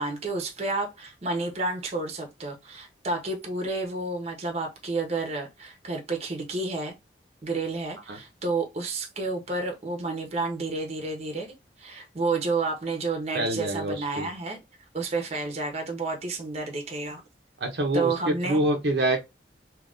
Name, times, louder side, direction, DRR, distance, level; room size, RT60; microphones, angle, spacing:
voice 1, 0.0-6.9 7.4-11.5 11.8-14.6 14.9-17.2 17.9-18.6, right 3 dB, 35° right, 0.8 m, -30 dB
voice 2, 13.3-14.3 17.6-19.2, right 1 dB, 65° right, 0.7 m, -26 dB
2.8 x 2.6 x 3.4 m
head